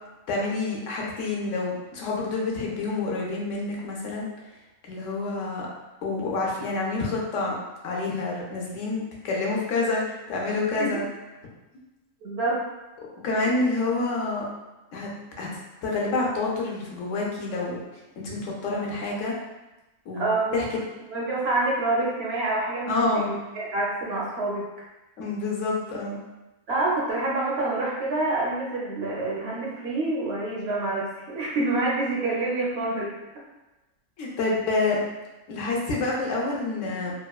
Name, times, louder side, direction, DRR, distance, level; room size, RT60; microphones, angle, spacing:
voice 1, 0.3-4.2 4.9-5.7 6.0-7.5 7.8-11.0 13.2-14.4 14.9-15.1 15.4-15.5 15.8-17.8 18.2-19.3 20.1-20.6 22.9-23.3 25.2-26.2 34.2-35.0 35.5-37.1, left 3 dB, 75° left, -2 dB, 0.9 m, -28 dB
voice 2, 12.2-12.6 20.1-20.6 21.1-24.7 26.7-33.1, right 2 dB, 60° right, -4 dB, 0.7 m, -27 dB
2.9 x 2.2 x 2.3 m, 1.0 s
omnidirectional pair, 1.4 m